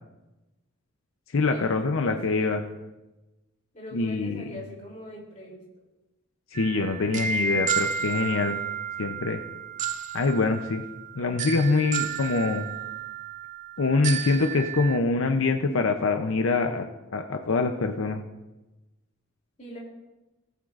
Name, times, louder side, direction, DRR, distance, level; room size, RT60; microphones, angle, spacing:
voice 1, 1.3-2.6 3.9-4.6 6.5-8.6 9.0-9.4 10.1-10.8 11.2-12.7 13.8-16.9 17.1-18.2, left 3 dB, 80° left, 5 dB, 0.6 m, -25 dB
voice 2, 2.0-2.5 3.7-5.6 19.6-19.8, left 1 dB, 35° left, -3 dB, 3.1 m, -42 dB
sound 1, 6.5-15.0, right 6 dB, 35° right, 0.4 m, -32 dB
18.5 x 8.0 x 2.5 m, 1.1 s
head